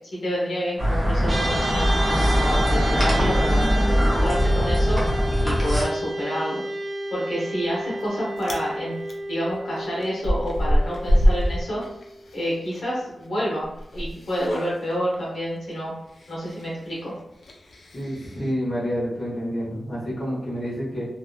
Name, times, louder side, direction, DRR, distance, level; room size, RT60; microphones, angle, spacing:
voice 1, 0.1-5.0 5.4-6.6 7.1-9.0 9.3-11.8 12.3-13.6 13.9-15.9 16.3-17.1, equal, 80° left, -6 dB, 1.0 m, -28 dB
sound 1, 0.8-5.8, equal, 5° left, 0.8 m, -21 dB
sound 2, 1.3-12.7, right 1 dB, 40° right, 0.5 m, -31 dB
Chewing mastication, 7.6-8.1 8.3-8.7 9.1-12.8 13.1-18.5, equal, 65° left, 0.4 m, -26 dB
voice 2, 17.9-21.1, equal, 50° left, -8 dB, 1.2 m, -28 dB
2.7 x 2.4 x 2.3 m, 0.86 s
wide cardioid pair, 145°, 0 cm